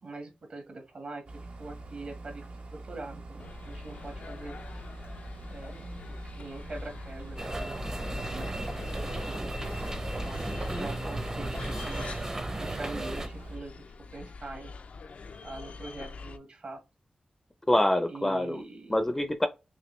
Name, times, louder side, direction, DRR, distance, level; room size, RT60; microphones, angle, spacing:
voice 1, 0.0-2.4 2.7-4.6 5.5-9.5 10.2-12.1 12.6-13.7 14.1-14.7 15.4-16.8 18.1-18.9, right 3 dB, 55° right, 1.4 m, -43 dB
sound 1, 1.3-13.6, right 2 dB, 80° right, 1.1 m, -44 dB
sound 2, 3.4-16.4, left 4 dB, 70° left, 0.4 m, -44 dB
sound 3, 7.4-13.3, right 2 dB, 25° right, 0.7 m, -35 dB
voice 2, 10.5-10.9 17.7-18.6 18.9-19.5, left 1 dB, 15° left, 0.5 m, -26 dB
5.9 x 2.2 x 3.2 m
wide cardioid pair, 135°, 2 cm